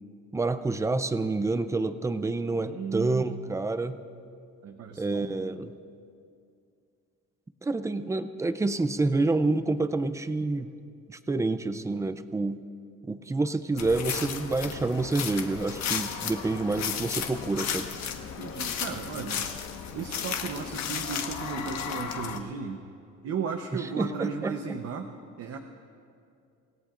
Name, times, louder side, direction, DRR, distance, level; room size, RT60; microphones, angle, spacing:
voice 1, 0.3-4.0 5.0-5.7 7.6-10.7 11.1-12.6 13.0-17.9 23.7-24.8, right 3 dB, 10° right, 12 dB, 0.5 m, -28 dB
voice 2, 2.7-3.4 4.6-5.3 18.4-19.5 19.9-22.8 23.2-25.1 25.4-25.6, right 5 dB, 45° right, 4 dB, 0.9 m, -35 dB
sound 1, 13.8-22.4, left 7 dB, 55° left, 1.4 m, -34 dB
26.5 x 17.5 x 2.5 m, 2.5 s
cardioid pair, 135°, 32 cm